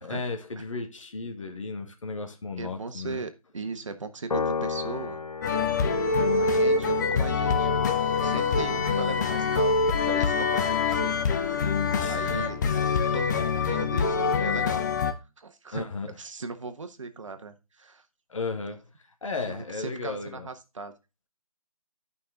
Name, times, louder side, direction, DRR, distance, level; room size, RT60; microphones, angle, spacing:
voice 1, 0.0-3.2 8.8-9.0 12.0-12.8 15.7-16.1 18.3-18.8 19.2-20.5, left 3 dB, 60° left, 2.1 m, -35 dB
voice 2, 2.6-5.2 6.3-7.7 8.1-11.4 12.1-12.6 13.1-14.8 15.4-15.8 16.2-18.0 19.5-20.9, right 4 dB, 60° right, 1.3 m, -38 dB
Piano, 4.3-10.9, left 5 dB, 80° left, 1.0 m, -36 dB
sound 1, 5.4-15.1, left 4 dB, 30° left, 0.9 m, -25 dB
Wind instrument woodwind instrument, 7.4-11.2, left 11 dB, 5° left, 0.9 m, -33 dB
12.0 x 5.5 x 3.7 m
figure-of-eight pair, 145°, 18 cm